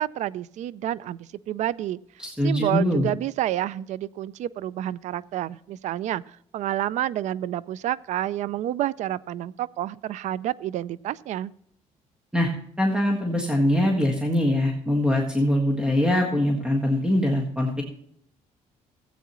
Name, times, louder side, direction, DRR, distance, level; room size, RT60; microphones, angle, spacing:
voice 1, 0.0-2.0 2.4-11.5, right 13 dB, 65° right, 21 dB, 0.4 m, -29 dB
voice 2, 2.2-3.1 12.3-12.5 12.8-17.7, left 1 dB, 5° right, 0 dB, 1.6 m, -22 dB
15.5 x 8.4 x 3.0 m, 0.67 s
cardioid pair, 105°, 13 cm